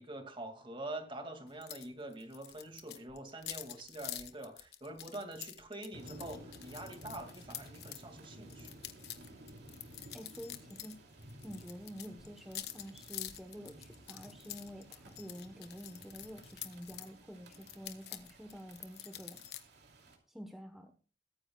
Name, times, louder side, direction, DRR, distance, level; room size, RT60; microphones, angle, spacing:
voice 1, 0.0-8.7, right 1 dB, 30° right, 5 dB, 2.2 m, -45 dB
sound 1, 1.6-1.9 2.1-8.0 8.5-11.0 11.2-17.1 17.5-19.6, left 12 dB, 65° left, 1.2 m, -47 dB
sound 2, 5.9-20.2, right 1 dB, 70° right, 2.7 m, -55 dB
voice 2, 10.1-11.0 11.4-19.4 20.3-20.9, equal, ahead, 3 dB, 1.0 m, -48 dB
22.0 x 9.8 x 2.3 m, 0.37 s
head